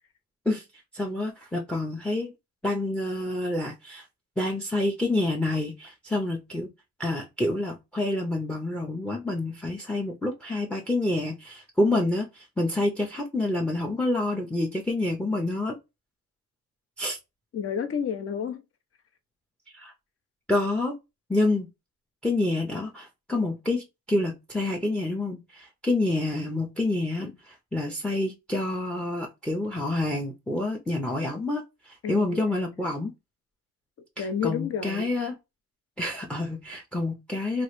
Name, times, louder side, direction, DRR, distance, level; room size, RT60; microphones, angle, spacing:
voice 1, 0.9-2.3 2.6-4.0 4.4-6.7 7.0-15.7 17.0-17.2 19.7-19.9 20.5-20.9 21.3-21.7 22.2-33.1 34.2-35.3 36.0-37.6, left 2 dB, 5° left, 0.6 m, -28 dB
voice 2, 17.5-18.6 32.0-32.6 34.2-35.1, left 7 dB, 50° left, 0.7 m, -30 dB
3.0 x 2.4 x 3.0 m
cardioid pair, 90°, 30 cm